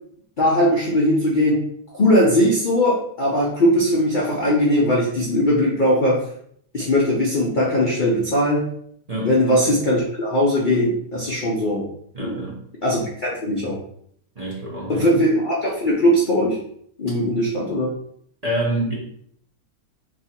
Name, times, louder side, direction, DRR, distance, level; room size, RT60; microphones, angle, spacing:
voice 1, 0.4-1.6 1.9-6.2 6.7-8.6 9.1-11.9 12.2-12.4 12.8-13.8 14.9-16.6 17.0-17.9, equal, 60° left, -4 dB, 0.5 m, -19 dB
voice 2, 12.1-12.6 14.4-15.1 18.4-18.9, right 1 dB, 30° right, -5 dB, 0.8 m, -26 dB
3.0 x 2.8 x 4.2 m, 0.67 s
omnidirectional pair, 1.8 m